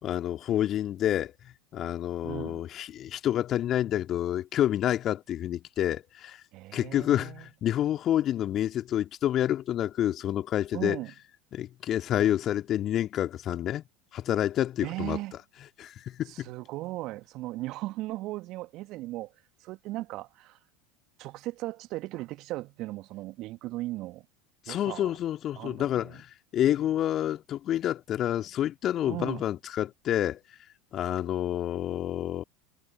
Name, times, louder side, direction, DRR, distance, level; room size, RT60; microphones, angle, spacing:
voice 1, 0.0-1.3 1.7-6.4 6.7-11.0 11.5-13.8 14.1-15.2 15.8-16.5 24.7-26.3 26.5-30.4 30.9-32.4, left 11 dB, 40° left, 2.5 m, -28 dB
voice 2, 2.2-2.6 6.5-7.5 10.7-11.1 14.8-15.3 16.3-19.3 19.6-20.6 21.2-24.2 24.7-25.1 25.5-26.2 29.1-29.4, right 18 dB, 50° right, 1.8 m, -37 dB
figure-of-eight pair, 80°, 0 cm